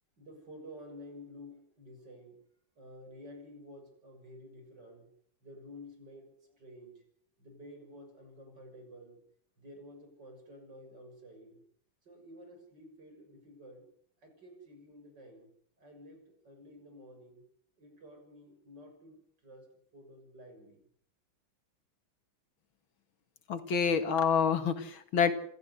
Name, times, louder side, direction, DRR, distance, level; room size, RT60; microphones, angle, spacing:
voice 1, 0.2-2.4 2.8-5.1 5.4-6.9 7.4-9.2 9.6-11.6 12.1-13.9 14.2-15.5 15.8-17.4 17.8-19.2 19.4-19.7 19.9-20.8, equal, 60° right, 5 dB, 7.2 m, -51 dB
voice 2, 23.5-25.3, left 6 dB, 80° left, 10 dB, 2.6 m, -27 dB
27.0 x 13.5 x 8.1 m, 0.63 s
omnidirectional pair, 2.2 m